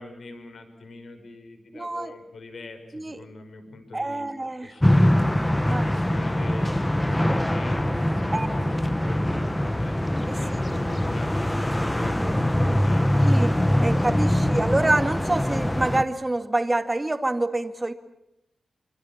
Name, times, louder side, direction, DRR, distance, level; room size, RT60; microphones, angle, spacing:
voice 1, 0.0-4.3 4.6-5.3 5.6-13.5 14.3-14.7, left 3 dB, 60° left, 7 dB, 5.2 m, -43 dB
voice 2, 1.7-2.1 2.9-3.2 3.9-4.8 5.6-5.9 8.3-8.5 10.3-10.4 13.2-13.5 13.8-17.9, right 2 dB, 15° right, 8 dB, 2.1 m, -26 dB
sound 1, 4.8-16.0, left 1 dB, 10° left, 1.3 m, -23 dB
27.5 x 25.5 x 7.3 m, 0.82 s
wide cardioid pair, 170°, 0 cm